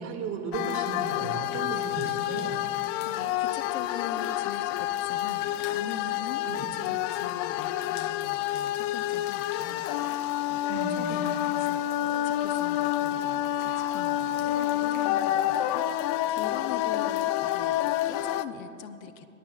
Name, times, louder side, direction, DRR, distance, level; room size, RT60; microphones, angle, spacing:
voice 1, 0.0-2.6 6.4-6.6 10.6-11.2, right 5 dB, 45° right, 2 dB, 2.3 m, -35 dB
sound 1, 0.5-18.4, left 13 dB, 50° left, 0.6 m, -28 dB
voice 2, 2.7-10.6 10.9-11.8 12.2-19.3, left 9 dB, 75° left, 10 dB, 0.9 m, -43 dB
24.5 x 11.5 x 2.5 m, 2.6 s
hypercardioid pair, 95°, 41 cm